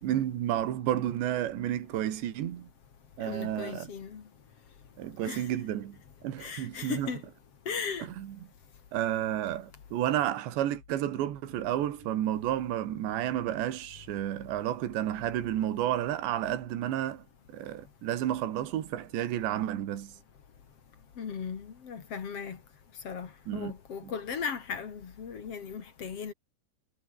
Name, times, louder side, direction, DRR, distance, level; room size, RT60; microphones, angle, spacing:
voice 1, 0.0-2.7 3.2-3.9 5.0-6.0 6.2-7.1 8.0-8.4 8.9-20.2 23.5-23.7 24.0-24.1, right 12 dB, 75° right, 4.3 m, -31 dB
voice 2, 3.2-4.2 5.2-5.5 6.4-7.2 7.7-8.1 21.2-22.6 23.0-26.3, left 6 dB, 45° left, 2.4 m, -37 dB
omnidirectional pair, 5.3 m